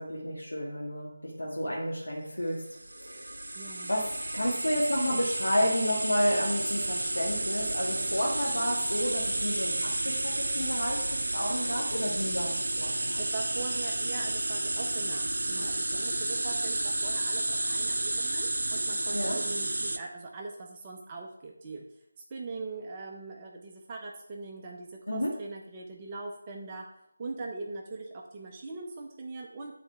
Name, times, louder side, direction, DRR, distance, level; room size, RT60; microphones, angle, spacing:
voice 1, 0.0-2.6 2.9-3.3 3.9-4.1 4.3-13.2 19.1-19.4 25.1-25.3, equal, 75° left, -5 dB, 2.2 m, -31 dB
sound 1, 2.7-20.0, right 2 dB, 60° right, 0.6 m, -31 dB
voice 2, 3.5-3.9 13.2-21.8 22.3-26.9 27.2-29.7, right 3 dB, 20° right, 0 dB, 0.8 m, -41 dB
9.8 x 4.2 x 4.7 m, 0.77 s
figure-of-eight pair, 160°, 0 cm